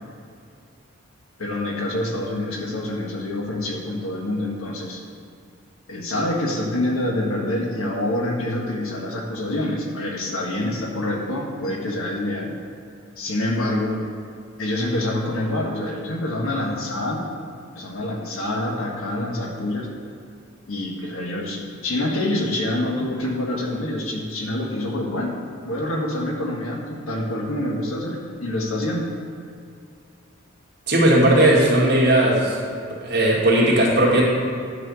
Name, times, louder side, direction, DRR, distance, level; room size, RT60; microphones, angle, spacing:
voice 1, 1.4-5.0 5.9-12.5 13.2-14.0 14.6-17.3 17.7-19.9 20.7-25.3 25.6-29.1, left 1 dB, 90° left, -1 dB, 1.5 m, -26 dB
voice 2, 30.9-32.7 33.0-34.2, right 1 dB, 50° right, -4 dB, 1.9 m, -17 dB
10.0 x 4.3 x 6.3 m, 2.5 s
head